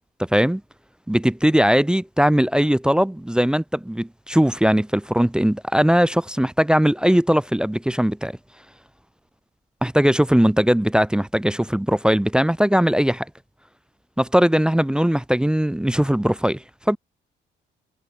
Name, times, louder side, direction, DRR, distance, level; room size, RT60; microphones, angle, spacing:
voice 1, 0.3-0.6 1.1-8.3 9.8-13.3 14.2-17.0, equal, 5° right, 0.4 m, -19 dB
cardioid pair, 90°, 20 cm